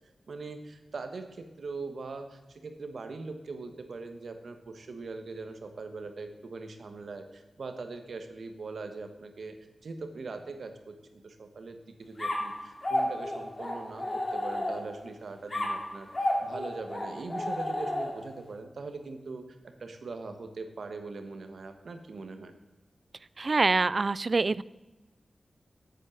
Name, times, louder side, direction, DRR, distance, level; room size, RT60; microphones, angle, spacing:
voice 1, 0.3-9.6 9.8-19.4 19.8-22.5, right 3 dB, 80° right, 7 dB, 1.4 m, -41 dB
sound 1, 12.2-15.1 15.5-18.4, left 1 dB, 35° left, 3.1 m, -32 dB
voice 2, 23.4-24.6, right 3 dB, 50° right, 20 dB, 0.4 m, -25 dB
8.5 x 8.4 x 7.2 m, 1.1 s
wide cardioid pair, 75°, 0 cm